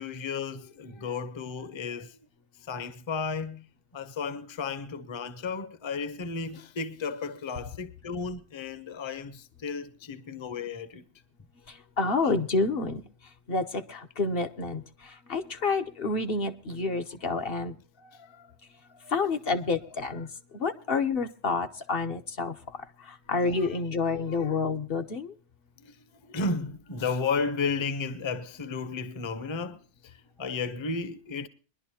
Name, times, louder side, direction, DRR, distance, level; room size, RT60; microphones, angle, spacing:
voice 1, 0.0-2.2 2.6-3.6 3.9-11.0 12.2-12.3 18.0-18.5 18.9-19.1 19.9-20.1 23.3-24.6 25.8-31.5, left 4 dB, 30° left, 0.7 m, -34 dB
voice 2, 12.0-13.0 13.5-14.8 15.3-17.7 19.1-20.3 20.5-22.5 23.3-25.3, left 4 dB, 60° left, 1.1 m, -28 dB
22.0 x 11.5 x 2.8 m
omnidirectional pair, 1.1 m